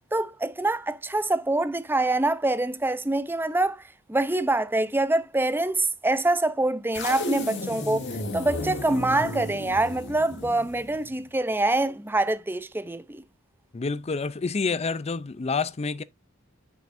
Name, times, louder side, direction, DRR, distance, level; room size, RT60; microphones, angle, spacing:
voice 1, 0.1-3.8 4.1-8.0 8.3-13.2, right 2 dB, 10° right, 0.6 m, -25 dB
sound 1, 6.9-11.2, left 1 dB, 60° left, 2.1 m, -33 dB
voice 2, 13.7-16.0, left 4 dB, 30° left, 0.5 m, -28 dB
8.8 x 6.1 x 2.6 m
head